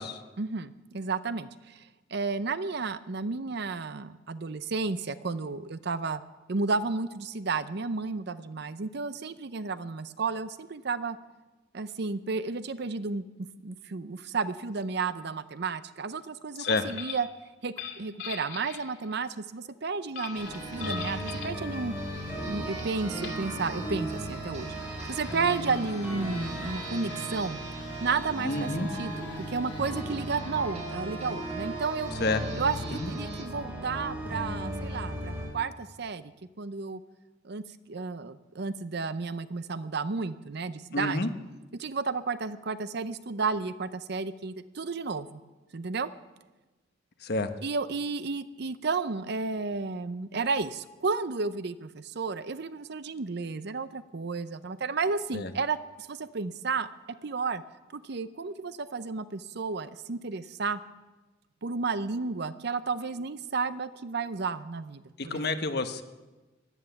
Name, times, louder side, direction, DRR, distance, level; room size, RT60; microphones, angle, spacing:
voice 1, 0.4-6.2 6.5-11.2 11.7-13.2 13.6-17.3 17.6-21.9 22.5-24.7 25.1-27.6 28.0-32.1 32.6-36.3 36.6-37.0 37.4-41.2 41.7-45.4 45.7-46.1 47.6-56.9 57.2-57.6 57.9-60.8 61.6-65.4, right 4 dB, 65° right, 14 dB, 0.7 m, -32 dB
sound 1, 16.6-17.3 17.7-19.2 20.1-21.6 22.8-22.9 23.2-23.4 24.5-33.8, left 8 dB, 80° left, 2.5 m, -44 dB
sound 2, 20.2-33.5, right 4 dB, 40° right, 1.8 m, -44 dB
sound 3, 20.4-35.5, equal, 10° right, 4.4 m, -36 dB
voice 2, 28.4-28.9 32.2-32.4 33.0-33.1 40.9-41.3 47.2-47.5 55.3-55.5 65.2-66.0, left 2 dB, 60° left, 8 dB, 1.1 m, -29 dB
16.5 x 11.5 x 7.1 m, 1.2 s
head